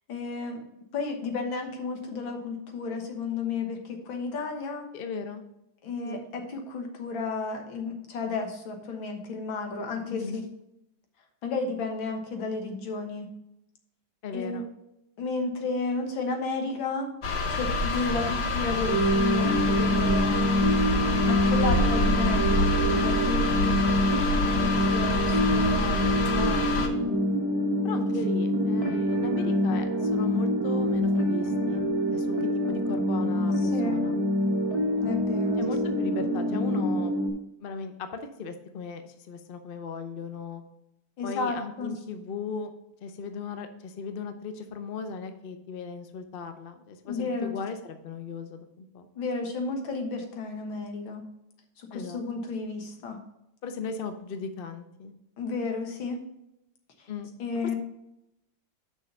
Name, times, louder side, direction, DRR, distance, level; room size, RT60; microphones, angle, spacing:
voice 1, 0.1-0.6 0.9-4.9 5.8-10.4 11.4-13.3 14.3-14.6 15.2-17.1 17.5-20.5 21.1-23.8 24.1-26.0 26.3-26.9 28.1-28.3 33.6-34.0 35.0-35.6 41.2-41.9 47.1-47.6 49.2-51.2 51.8-53.2 55.4-56.2 57.0-57.1 57.4-57.8, left 4 dB, 80° left, 3 dB, 2.1 m, -32 dB
voice 2, 4.9-5.4 6.0-6.2 10.1-10.4 14.2-14.6 27.8-31.9 32.1-34.2 35.6-37.1 37.6-40.6 41.2-42.7 43.0-49.1 51.9-52.5 53.6-55.1 57.1-57.3, left 5 dB, 65° left, 8 dB, 0.5 m, -37 dB
sound 1, 17.2-26.9, left 2 dB, 45° left, 0.9 m, -27 dB
sound 2, 18.9-37.3, equal, 15° right, 1.3 m, -26 dB
6.4 x 5.5 x 6.7 m, 0.85 s
omnidirectional pair, 2.1 m